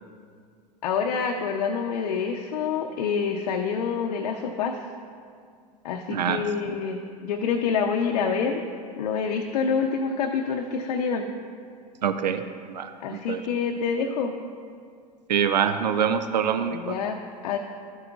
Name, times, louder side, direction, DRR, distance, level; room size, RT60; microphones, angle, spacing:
voice 1, 0.8-4.8 5.8-8.6 9.0-11.3 13.0-14.3 16.7-17.2 17.4-17.6, left 6 dB, 70° left, 2 dB, 0.6 m, -27 dB
voice 2, 12.0-12.4 12.7-13.4 15.3-16.9, right 8 dB, 85° right, 9 dB, 0.4 m, -25 dB
12.5 x 8.0 x 2.4 m, 2.2 s
hypercardioid pair, 85°, 21 cm